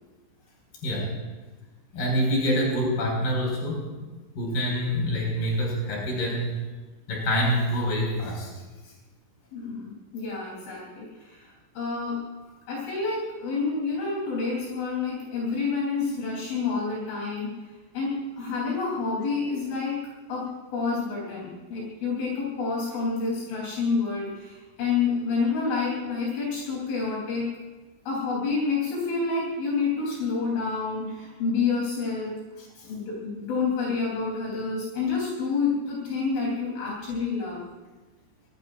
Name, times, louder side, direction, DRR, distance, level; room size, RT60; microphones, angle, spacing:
voice 1, 0.8-1.1 1.9-3.9 4.4-6.6 7.1-8.5 32.8-32.9, equal, 50° left, -2 dB, 7.1 m, -26 dB
voice 2, 9.5-12.2 12.7-20.0 20.3-27.5 28.1-32.3 32.8-37.6, left 4 dB, 70° left, -5 dB, 6.1 m, -28 dB
26.0 x 20.5 x 2.6 m, 1.3 s
omnidirectional pair, 5.9 m